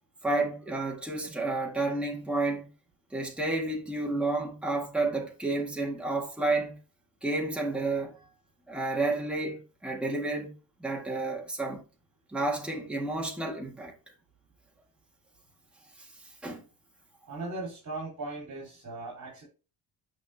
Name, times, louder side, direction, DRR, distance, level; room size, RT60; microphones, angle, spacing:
voice 1, 0.2-2.7 3.1-6.8 7.2-8.2 8.7-10.5 10.8-11.8 12.3-13.9 16.0-16.1 16.4-16.6, right 2 dB, 5° right, 1.8 m, -30 dB
voice 2, 17.3-19.4, right 2 dB, 50° right, 4.6 m, -38 dB
9.8 x 5.3 x 2.8 m
cardioid pair, 140°, 37 cm